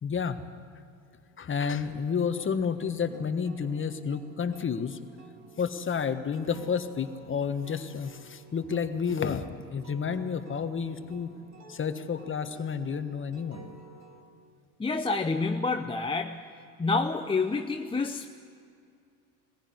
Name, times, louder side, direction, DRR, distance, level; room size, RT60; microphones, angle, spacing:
voice 1, 0.0-0.4 1.4-5.0 5.6-11.3 11.7-13.7, left 6 dB, 25° left, 9 dB, 1.4 m, -30 dB
sound 1, 1.9-14.2, right 3 dB, 35° right, 2.6 m, -52 dB
voice 2, 14.8-16.4 16.8-18.4, left 3 dB, 10° left, 5 dB, 0.8 m, -28 dB
21.0 x 15.5 x 9.6 m, 2.4 s
hypercardioid pair, 80°, 44 cm